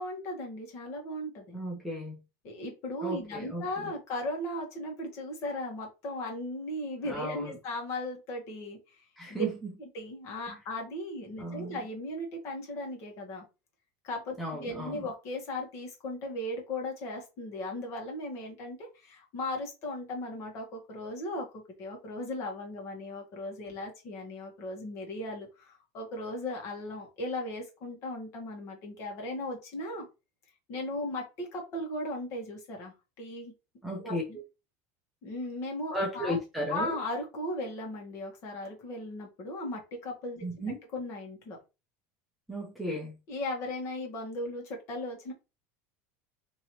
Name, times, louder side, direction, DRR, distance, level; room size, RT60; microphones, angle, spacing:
voice 1, 0.0-1.6 2.4-9.0 9.3-9.4 9.8-13.4 14.0-30.0 30.7-33.5 34.0-34.4 35.2-36.4 36.7-40.5 40.9-41.6 43.3-45.3, left 1 dB, 40° left, 1.5 m, -37 dB
voice 2, 1.5-2.2 3.0-3.9 7.0-7.6 9.2-9.7 11.4-11.8 14.4-15.1 33.8-34.2 35.9-37.0 40.4-40.8 42.5-43.2, right 1 dB, ahead, 0.8 m, -35 dB
4.5 x 3.0 x 3.1 m
cardioid pair, 170°, 8 cm